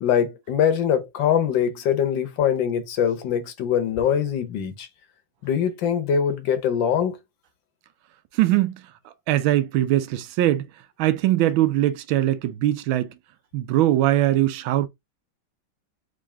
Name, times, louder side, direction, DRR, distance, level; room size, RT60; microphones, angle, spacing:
voice 1, 0.0-4.9 5.4-7.2, left 8 dB, 70° left, 1.5 m, -23 dB
voice 2, 8.4-8.8 9.3-10.7 11.0-13.1 13.5-14.9, right 14 dB, 80° right, 1.4 m, -21 dB
3.8 x 3.6 x 3.3 m
omnidirectional pair, 2.2 m